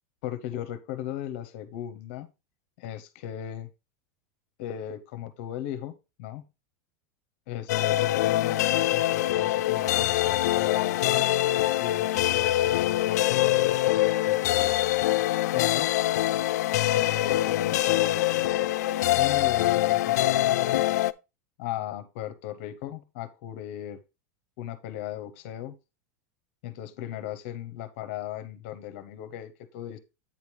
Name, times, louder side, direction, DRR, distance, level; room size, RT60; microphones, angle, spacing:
voice 1, 0.2-2.3 2.8-3.7 4.6-6.5 7.5-11.3 11.8-14.8 15.5-15.9 16.9-18.4 19.1-20.8 21.6-24.0 24.6-25.8 26.6-30.0, left 11 dB, 45° left, 12 dB, 0.7 m, -37 dB
sound 1, 7.7-21.1, left 15 dB, 80° left, 0.3 m, -24 dB
8.7 x 5.2 x 3.1 m, 0.27 s
supercardioid pair, 180°, 9 cm